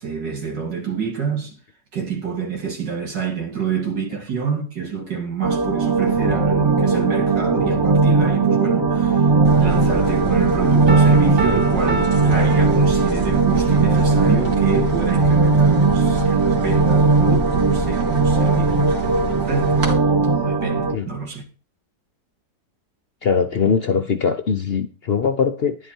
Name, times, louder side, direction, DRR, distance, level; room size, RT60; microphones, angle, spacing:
voice 1, 0.0-1.6 1.9-9.3 9.6-19.9 20.2-21.5, right 6 dB, 80° right, 3.1 m, -27 dB
sound 1, 5.4-20.9, right 4 dB, 20° right, 0.6 m, -18 dB
sound 2, 9.4-19.9, equal, 55° right, 2.4 m, -29 dB
Piano, 10.9-13.5, right 2 dB, 40° right, 1.0 m, -29 dB
voice 2, 23.2-25.9, left 6 dB, 55° left, 0.6 m, -21 dB
11.0 x 10.0 x 4.5 m
omnidirectional pair, 1.9 m